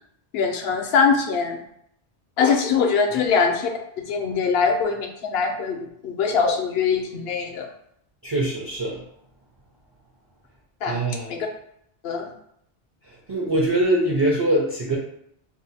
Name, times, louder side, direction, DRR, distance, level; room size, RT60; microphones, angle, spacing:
voice 1, 0.3-1.6 2.4-3.7 4.0-7.7 10.8-11.0 11.3-11.5 12.0-12.3, left 5 dB, 70° left, 3 dB, 0.8 m, -22 dB
voice 2, 8.2-9.0 10.9-11.3 13.3-15.0, right 1 dB, 35° right, -3 dB, 0.4 m, -22 dB
2.6 x 2.1 x 4.0 m, 0.71 s
omnidirectional pair, 1.1 m